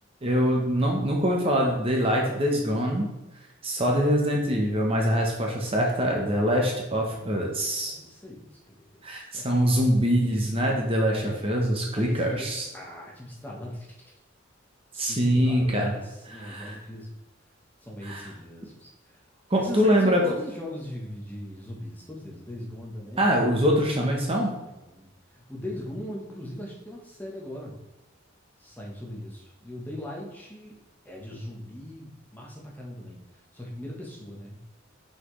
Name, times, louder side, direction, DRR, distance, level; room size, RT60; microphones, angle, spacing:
voice 1, 0.2-3.1 3.6-8.0 9.0-12.6 15.0-15.9 16.3-16.8 18.0-18.3 19.5-20.2 23.2-24.5, equal, 25° right, -1 dB, 1.0 m, -24 dB
voice 2, 7.8-9.7 10.0-10.2 11.0-11.5 12.0-12.5 12.7-13.9 14.9-17.1 17.8-19.2 19.5-23.3 24.7-27.8 28.6-30.8 31.0-33.2 33.5-34.6, left 1 dB, 10° left, -3 dB, 1.2 m, -39 dB
5.9 x 5.8 x 3.2 m, 1.0 s
head